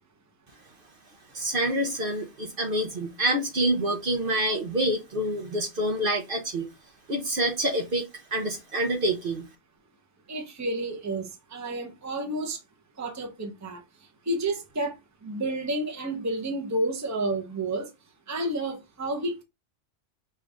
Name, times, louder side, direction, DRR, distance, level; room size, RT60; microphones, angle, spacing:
voice 1, 1.3-6.7 7.1-8.0 8.3-9.4, right 1 dB, 50° right, 1.0 m, -27 dB
voice 2, 10.3-12.6 13.0-13.8 14.3-14.9 15.2-17.9 18.3-19.4, right 1 dB, 15° right, 0.8 m, -30 dB
5.5 x 2.6 x 3.4 m
omnidirectional pair, 1.2 m